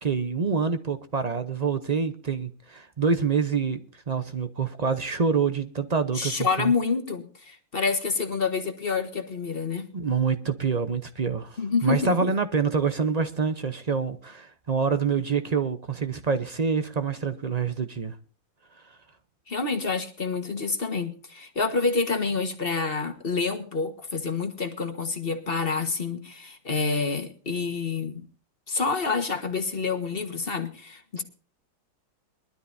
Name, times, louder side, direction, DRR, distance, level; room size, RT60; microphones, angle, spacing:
voice 1, 0.0-3.8 4.1-6.7 9.9-18.1 31.2-31.3, right 5 dB, 45° right, 0.5 m, -26 dB
voice 2, 6.1-9.9 11.6-12.3 19.5-28.2 28.7-31.2, left 4 dB, 35° left, 1.5 m, -28 dB
22.0 x 12.5 x 2.7 m
omnidirectional pair, 2.0 m